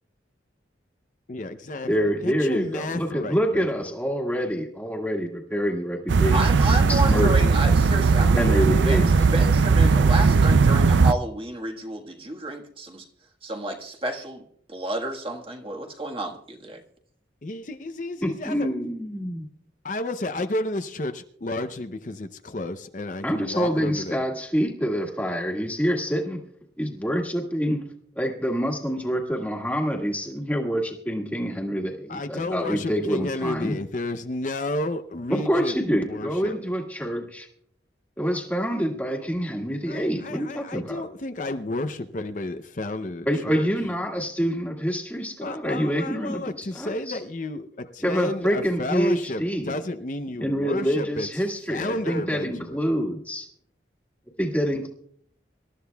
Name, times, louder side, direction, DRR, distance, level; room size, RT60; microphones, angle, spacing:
voice 1, 1.3-3.9 17.4-18.7 19.8-24.2 32.1-36.6 39.9-43.7 45.4-52.8, left 2 dB, 45° left, 8 dB, 0.6 m, -32 dB
voice 2, 1.9-6.3 6.9-7.3 8.4-9.1 18.2-19.4 23.2-26.4 26.8-27.9 28.1-33.7 35.3-37.5 38.2-41.0 43.2-47.2 48.0-49.8 50.4-53.5 54.4-54.9, equal, 10° left, 1 dB, 1.8 m, -26 dB
sound 1, 6.1-11.1, right 4 dB, 80° right, 0.4 m, -18 dB
voice 3, 6.3-13.1 13.4-16.8, right 1 dB, 30° right, 3 dB, 1.5 m, -31 dB
26.0 x 13.0 x 2.3 m, 0.63 s
head